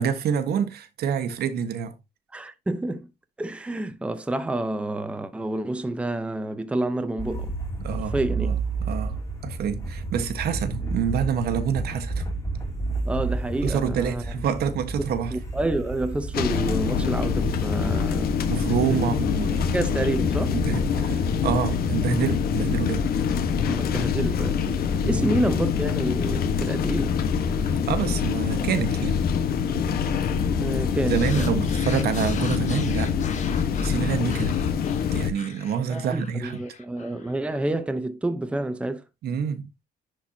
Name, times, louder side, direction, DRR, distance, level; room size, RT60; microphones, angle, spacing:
voice 1, 0.0-2.0 7.8-8.6 8.9-12.3 13.6-15.4 18.5-19.8 20.5-23.1 25.0-25.3 27.6-29.2 31.0-33.1 33.5-34.5 35.1-36.6 39.2-39.7, right 7 dB, 65° right, 1.4 m, -27 dB
voice 2, 2.3-3.1 3.4-7.5 7.9-8.5 13.0-14.2 15.3-18.4 18.9-19.1 19.7-20.6 23.7-27.2 30.6-31.6 35.9-39.0, right 2 dB, 5° right, 0.8 m, -28 dB
sound 1, 7.2-21.9, right 2 dB, 15° left, 3.0 m, -32 dB
sound 2, 16.3-35.3, left 7 dB, 60° left, 1.3 m, -25 dB
sound 3, 31.1-37.6, left 7 dB, 45° left, 1.6 m, -40 dB
10.5 x 4.6 x 2.8 m
cardioid pair, 135°, 17 cm